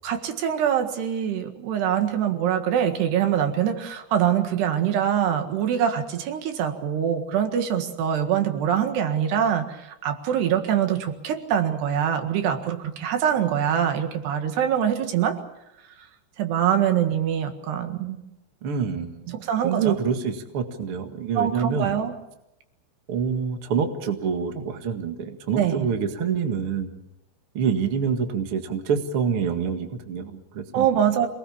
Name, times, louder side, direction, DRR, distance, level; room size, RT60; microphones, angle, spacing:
voice 1, 0.0-15.4 16.4-18.2 19.3-20.0 21.4-22.1 25.6-25.9 30.7-31.3, right 9 dB, 70° right, 6 dB, 3.7 m, -24 dB
voice 2, 18.6-22.0 23.1-26.9 27.5-30.8, right 6 dB, 50° right, 5 dB, 1.7 m, -26 dB
26.5 x 20.0 x 7.3 m, 0.90 s
omnidirectional pair, 5.2 m